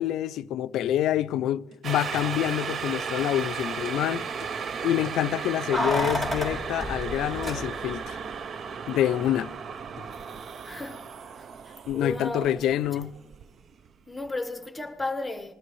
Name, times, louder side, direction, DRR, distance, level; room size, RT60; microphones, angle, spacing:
voice 1, 0.0-4.3 4.8-8.2 8.9-9.5 11.9-13.1, left 12 dB, 90° left, 0.3 m, -27 dB
sound 1, 1.7-1.8 2.1-2.3 2.7-2.8 3.2-3.4 3.8-4.0 4.4-4.6 5.0-5.3 6.0-6.3 7.6-7.8 8.9-9.2 10.0-10.2, left 1 dB, 60° right, 2.0 m, -46 dB
sound 2, 1.8-13.9 14.3-14.4, right 6 dB, 45° right, 0.4 m, -35 dB
Keys jangling, 5.7-8.1 8.3-8.4, left 1 dB, 20° right, 1.9 m, -30 dB
voice 2, 10.6-11.1 11.3-13.1 14.1-15.5, left 2 dB, 10° left, 1.1 m, -35 dB
20.0 x 12.5 x 3.1 m
cardioid pair, 145°, 0 cm